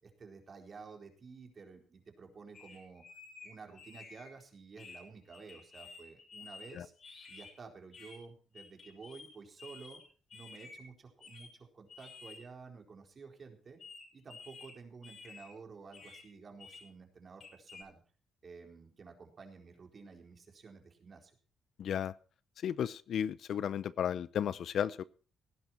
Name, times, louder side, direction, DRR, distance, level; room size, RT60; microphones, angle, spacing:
voice 1, 0.0-3.0 3.4-6.9 7.3-10.0 10.3-13.8 14.1-18.0 18.4-21.3, right 4 dB, 40° right, 3 dB, 4.2 m, -52 dB
sound 1, 2.5-4.3 4.7-7.5 7.9-8.2 8.5-9.3 9.6-10.8 11.2-11.5 11.9-12.4 13.8-14.7 15.0-15.5 15.9-16.2 16.6-16.8 17.4-17.8, left 4 dB, 50° left, 6.7 m, -52 dB
voice 2, 21.8-22.1 22.6-25.0, left 9 dB, 65° left, 18 dB, 0.7 m, -34 dB
18.0 x 11.0 x 4.4 m, 0.38 s
cardioid pair, 90°, 0 cm